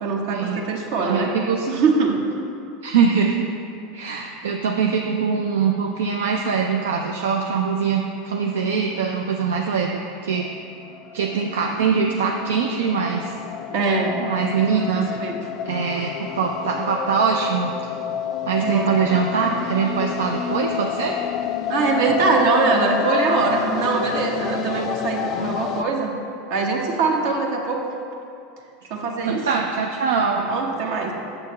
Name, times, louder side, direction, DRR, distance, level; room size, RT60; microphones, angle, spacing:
voice 1, 0.0-1.3 1.7-2.2 13.7-14.2 14.7-15.4 18.6-19.1 21.7-26.1 26.5-27.8 28.9-29.4 30.3-31.1, right 4 dB, 60° right, 1 dB, 0.9 m, -22 dB
voice 2, 1.0-1.7 2.8-3.5 3.9-10.5 11.1-13.3 14.2-15.1 15.6-17.7 18.4-21.2 29.2-30.5, right 6 dB, 80° right, 2 dB, 0.4 m, -23 dB
sound 1, 10.3-25.8, left 9 dB, 50° left, 0.3 m, -29 dB
7.5 x 6.3 x 3.1 m, 2.6 s
hypercardioid pair, 90°, 0 cm